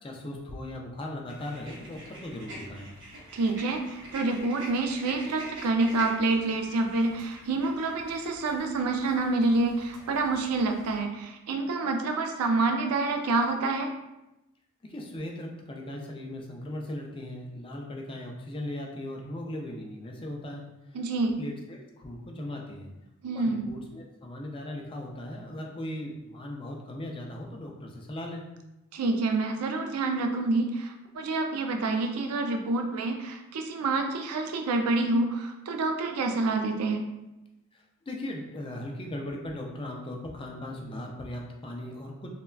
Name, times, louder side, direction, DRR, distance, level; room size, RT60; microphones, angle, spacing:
voice 1, 0.0-2.9 14.8-20.6 21.4-22.9 23.3-28.4 37.7-42.3, left 1 dB, 25° left, 1 dB, 0.3 m, -38 dB
sound 1, 1.3-11.0, right 1 dB, 55° right, 0.8 m, -46 dB
voice 2, 3.3-13.9 20.9-21.3 23.2-23.7 28.9-37.0, right 3 dB, 90° right, 5 dB, 0.4 m, -27 dB
3.3 x 2.2 x 2.2 m, 0.95 s
head